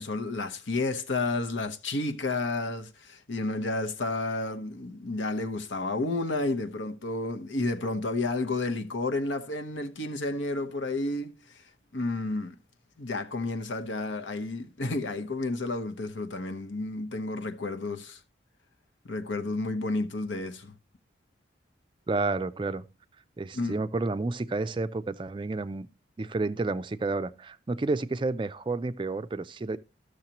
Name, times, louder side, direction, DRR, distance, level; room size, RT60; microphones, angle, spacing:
voice 1, 0.0-11.6 11.9-12.5 13.0-18.2 19.0-20.7 23.5-23.8, left 2 dB, 85° left, 1.0 m, -31 dB
voice 2, 22.1-22.8 23.4-25.9 26.2-29.8, right 3 dB, 25° right, 0.3 m, -30 dB
13.5 x 6.5 x 2.9 m
head